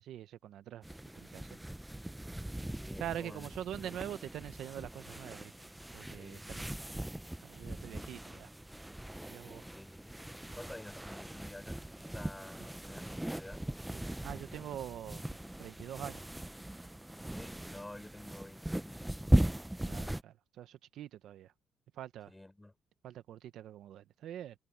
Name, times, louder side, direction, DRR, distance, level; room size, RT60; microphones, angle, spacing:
voice 1, 0.0-1.6 3.0-5.7 5.9-6.7 7.4-8.5 9.3-9.6 13.9-15.3 15.6-16.2 19.8-21.5 21.9-22.3 23.0-24.5, right 11 dB, 75° right, 1.0 m, -44 dB
sound 1, 0.8-20.2, right 1 dB, 5° right, 0.6 m, -38 dB
voice 2, 2.7-3.5 3.8-4.1 6.1-6.7 8.2-8.5 9.7-10.2 10.5-13.6 17.3-19.4 22.3-22.7, left 1 dB, 10° left, 4.8 m, -51 dB
cardioid pair, 90°, 0 cm